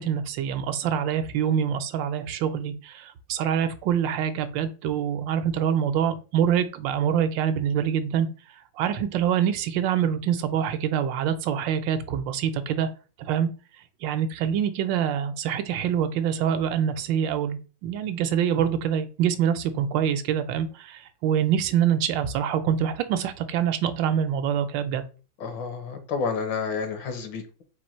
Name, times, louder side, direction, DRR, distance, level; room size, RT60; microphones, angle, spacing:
voice 1, 0.0-8.3 8.8-12.9 13.2-13.5 14.0-25.0, right 9 dB, 85° right, 10 dB, 1.3 m, -25 dB
voice 2, 25.4-27.6, left 5 dB, 80° left, 7 dB, 1.6 m, -30 dB
4.4 x 2.6 x 4.3 m, 0.35 s
omnidirectional pair, 2.0 m